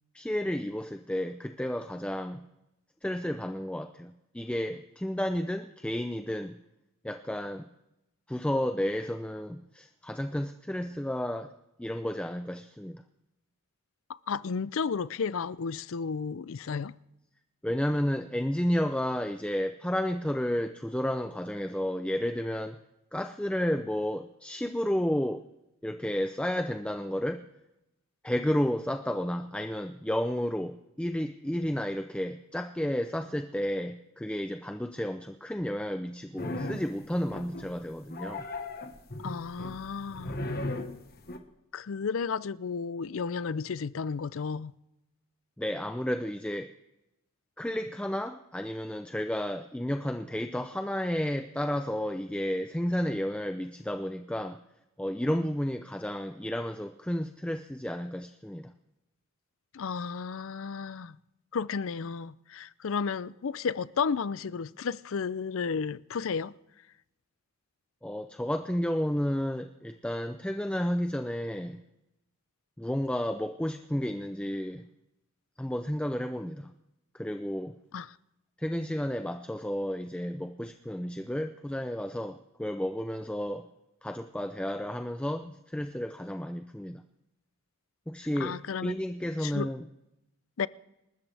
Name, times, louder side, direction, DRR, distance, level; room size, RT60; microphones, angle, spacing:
voice 1, 0.1-2.4 3.0-6.5 7.0-7.7 8.3-11.5 11.8-13.0 17.6-22.8 23.1-25.4 25.8-27.4 28.2-38.5 45.6-46.7 47.6-54.6 55.0-58.7 68.0-71.8 72.8-74.9 75.6-76.7 77.1-77.7 78.6-83.7 84.0-87.0 88.1-89.9, equal, 5° left, 0.4 m, -32 dB
voice 2, 14.3-16.9 39.2-40.4 41.7-44.7 59.7-61.2 61.5-66.5 77.9-78.1 88.4-89.0 89.4-89.7 90.6-90.7, left 5 dB, 65° left, 0.5 m, -33 dB
sound 1, 36.4-36.9 37.3-37.8 38.1-41.4, left 2 dB, 45° left, 1.3 m, -37 dB
27.5 x 13.5 x 3.4 m
head